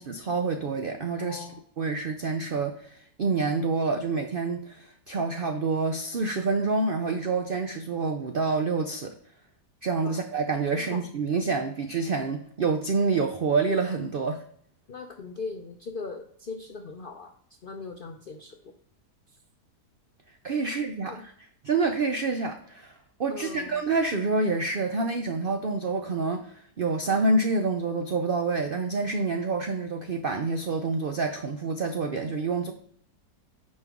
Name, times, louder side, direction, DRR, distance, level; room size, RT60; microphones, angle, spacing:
voice 1, 0.0-1.5 1.8-9.1 9.8-14.4 20.4-21.3 21.6-22.9 23.2-32.7, right 4 dB, 75° right, 5 dB, 0.5 m, -27 dB
voice 2, 1.2-1.6 10.0-10.2 10.7-11.0 14.9-17.3 17.6-18.7 20.6-21.2 23.3-23.8, left 4 dB, 70° left, 4 dB, 0.5 m, -39 dB
9.5 x 5.3 x 3.6 m, 0.63 s
omnidirectional pair, 1.8 m